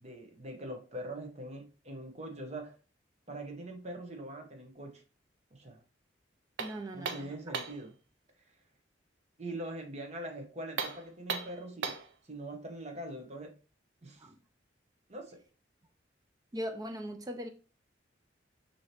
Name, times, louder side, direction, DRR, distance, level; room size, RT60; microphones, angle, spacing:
voice 1, 0.0-2.7 3.3-5.0 5.5-5.8 6.9-7.9 9.4-12.0 12.3-13.6 14.0-14.3 15.1-15.4, right 1 dB, 35° right, 0.9 m, -42 dB
voice 2, 6.6-7.5 14.2-14.4 16.5-17.5, equal, 20° right, 0.3 m, -40 dB
sound 1, 6.6-7.9 10.7-12.1, right 5 dB, 80° right, 0.6 m, -37 dB
6.2 x 2.8 x 2.8 m
head